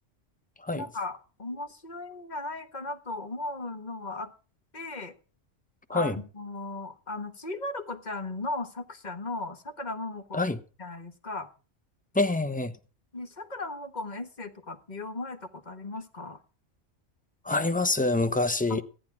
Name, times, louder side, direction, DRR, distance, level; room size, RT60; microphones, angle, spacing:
voice 1, 0.7-4.3 4.7-5.1 5.9-10.4 10.8-11.5 13.1-16.4 18.7-18.8, left 2 dB, 35° left, 1.4 m, -37 dB
voice 2, 12.1-12.7 17.4-18.8, left 2 dB, 10° left, 0.7 m, -26 dB
14.0 x 10.0 x 6.0 m
omnidirectional pair, 1.3 m